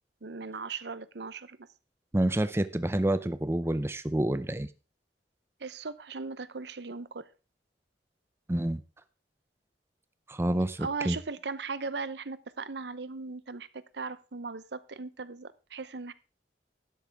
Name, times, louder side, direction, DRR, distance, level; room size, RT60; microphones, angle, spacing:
voice 1, 0.2-1.7 5.6-7.3 10.8-16.1, right 4 dB, 70° right, 0.8 m, -38 dB
voice 2, 2.1-4.7 8.5-8.8 10.3-11.2, right 1 dB, 15° right, 0.5 m, -28 dB
12.5 x 10.5 x 3.5 m
head